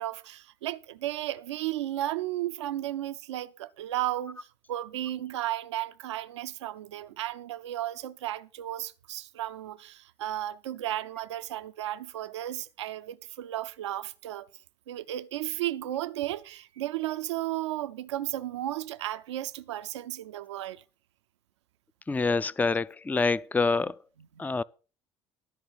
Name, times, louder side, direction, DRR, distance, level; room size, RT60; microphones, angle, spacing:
voice 1, 0.0-14.5 14.9-20.8 22.2-22.3 24.2-24.4, right 14 dB, 85° right, 0.5 m, -34 dB
voice 2, 22.1-24.0 24.4-24.6, left 4 dB, 10° left, 0.4 m, -26 dB
13.0 x 4.4 x 7.8 m
hypercardioid pair, 60°, 14 cm